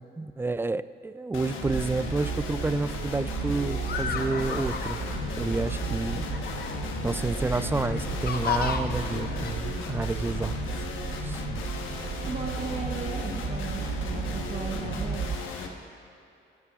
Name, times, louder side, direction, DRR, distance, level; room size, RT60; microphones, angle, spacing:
voice 1, 0.0-5.0 5.4-6.3 7.0-10.6 11.2-11.4, right 3 dB, 10° right, 15 dB, 0.3 m, -30 dB
sound 1, 1.3-15.7, left 4 dB, 85° left, 1.2 m, -36 dB
sound 2, 1.6-15.4, right 7 dB, 55° right, 0.7 m, -34 dB
sound 3, 3.5-9.5, left 6 dB, 50° left, 0.9 m, -34 dB
voice 2, 12.2-15.2, right 3 dB, 30° right, -1 dB, 1.1 m, -36 dB
21.5 x 11.0 x 2.4 m, 2.6 s
cardioid pair, 90°, 20 cm